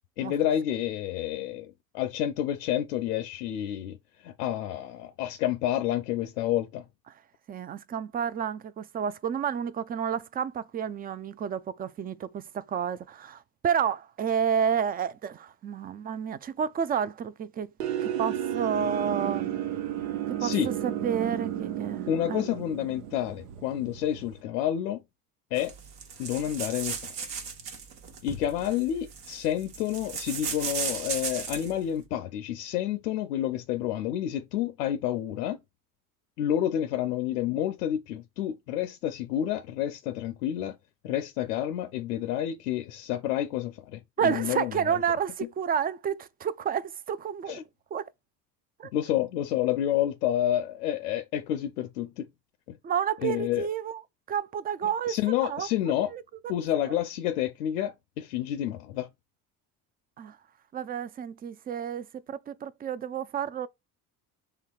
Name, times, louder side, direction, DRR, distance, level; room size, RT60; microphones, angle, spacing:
voice 1, 0.2-4.0 4.2-6.8 20.4-20.7 22.1-25.0 25.5-25.7 26.2-27.1 28.2-35.6 36.4-40.8 41.0-45.0 47.5-47.6 48.9-52.3 52.7-52.8 53.2-53.7 55.1-56.1 56.5-59.1, left 11 dB, 85° left, 0.6 m, -29 dB
voice 2, 7.5-17.7 18.0-19.4 20.3-22.5 44.2-47.6 47.9-48.1 48.8-48.9 52.8-54.0 54.3-55.1 55.4-55.7 56.1-56.2 56.9-57.0 60.2-60.4 60.7-63.7, right 8 dB, 20° right, 0.3 m, -30 dB
sound 1, 17.8-24.4, right 11 dB, 85° right, 0.6 m, -33 dB
sound 2, 25.6-31.8, right 6 dB, 65° right, 1.1 m, -36 dB
5.6 x 3.3 x 2.3 m
hypercardioid pair, 60°, 46 cm